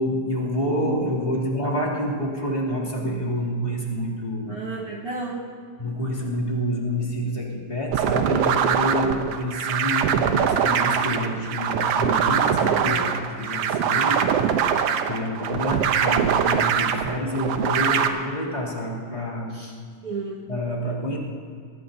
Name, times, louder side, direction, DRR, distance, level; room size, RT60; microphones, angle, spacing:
voice 1, 0.0-4.6 5.8-19.5 20.5-21.2, equal, 15° left, -6 dB, 2.8 m, -28 dB
sound 1, 0.6-5.9, left 5 dB, 60° left, 3.6 m, -42 dB
voice 2, 4.5-5.5 12.5-13.2 19.5-19.7 20.0-20.5, right 3 dB, 50° right, -5 dB, 2.1 m, -33 dB
sound 2, 7.9-18.1, right 8 dB, 75° right, 1.4 m, -22 dB
24.5 x 19.0 x 2.8 m, 2.2 s
omnidirectional pair, 3.5 m